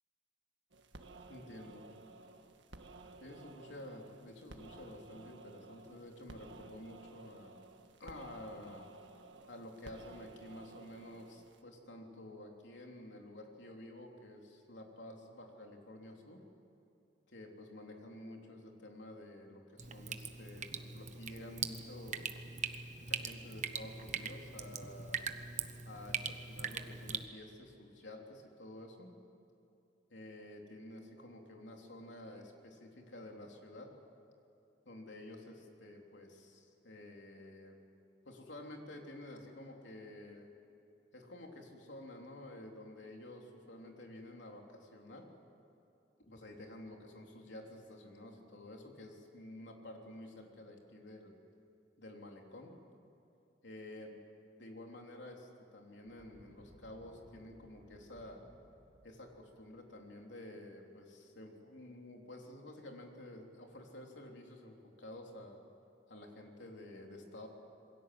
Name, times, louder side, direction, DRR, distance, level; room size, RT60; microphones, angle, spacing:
sound 1, 0.7-11.6, right 2 dB, 80° right, 1.7 m, -55 dB
voice 1, 1.3-1.9 3.2-7.6 8.0-8.9 9.5-16.4 17.3-22.5 23.0-25.3 25.9-29.1 30.1-33.9 34.9-37.8 38.3-40.5 41.1-45.3 46.2-51.4 52.0-52.7 53.6-54.2 54.6-58.5 59.0-65.6 66.1-67.5, left 1 dB, 75° left, 1 dB, 3.5 m, -51 dB
Drip, 19.8-27.3, right 6 dB, 40° right, 1.1 m, -41 dB
sound 2, 56.0-60.0, equal, 20° right, 5.7 m, -63 dB
27.5 x 22.0 x 7.9 m, 2.7 s
head